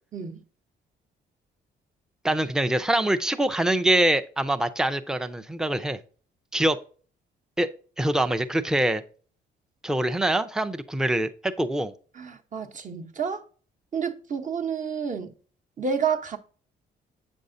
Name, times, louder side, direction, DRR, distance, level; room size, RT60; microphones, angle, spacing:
voice 1, 0.1-0.4 12.1-13.4 13.9-15.3 15.8-16.4, right 6 dB, 40° right, 0.9 m, -29 dB
voice 2, 2.2-6.0 6.5-6.8 7.6-7.7 8.0-9.0 9.8-11.9, right 1 dB, 5° right, 0.5 m, -24 dB
7.8 x 5.3 x 2.6 m
cardioid pair, 90°, 20 cm